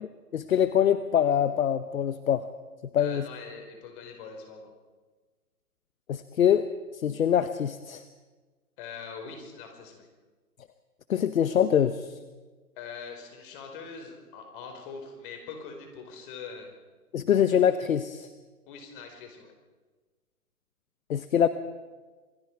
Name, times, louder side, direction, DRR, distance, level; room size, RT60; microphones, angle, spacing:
voice 1, 0.3-2.4 2.9-3.2 6.1-6.7 6.9-8.0 11.1-12.1 17.1-18.3 21.1-21.5, left 9 dB, 65° left, 12 dB, 1.1 m, -24 dB
voice 2, 3.0-4.7 8.8-10.1 12.8-16.7 18.7-19.5, left 5 dB, 35° left, 4 dB, 4.9 m, -43 dB
27.5 x 20.5 x 4.8 m, 1.3 s
hypercardioid pair, 140°, 46 cm